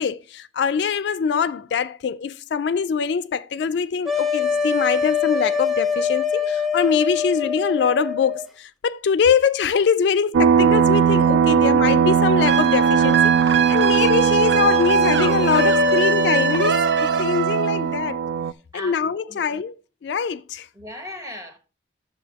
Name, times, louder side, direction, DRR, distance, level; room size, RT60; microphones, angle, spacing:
voice 1, 0.0-18.2 18.7-19.7 20.0-20.7, left 6 dB, 65° left, 0.3 m, -23 dB
sound 1, 4.0-8.5, left 6 dB, ahead, 0.7 m, -23 dB
sound 2, 10.3-18.5, right 7 dB, 85° right, 0.3 m, -19 dB
sound 3, 12.5-18.0, right 3 dB, 65° right, 0.7 m, -22 dB
voice 2, 18.7-19.5 20.7-21.6, left 1 dB, 15° right, 1.3 m, -37 dB
9.9 x 7.0 x 2.8 m
head